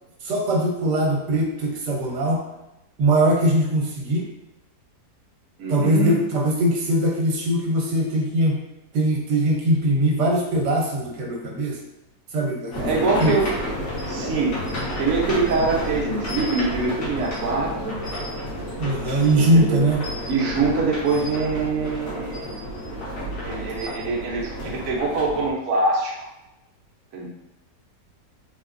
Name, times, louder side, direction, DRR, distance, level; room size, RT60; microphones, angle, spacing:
voice 1, 0.2-2.4 3.0-4.3 5.7-8.6 8.9-11.8 12.3-13.4 18.8-20.0, right 1 dB, 80° right, 0 dB, 1.6 m, -21 dB
voice 2, 5.6-6.2 12.8-13.5 14.1-14.5 15.0-18.0 19.4-19.8 20.3-22.4 23.5-26.3 27.1-27.3, right 3 dB, 60° right, -3 dB, 1.2 m, -24 dB
sound 1, 12.7-25.5, equal, 85° left, 1.7 m, -31 dB
3.9 x 3.6 x 2.6 m, 0.94 s
omnidirectional pair, 1.8 m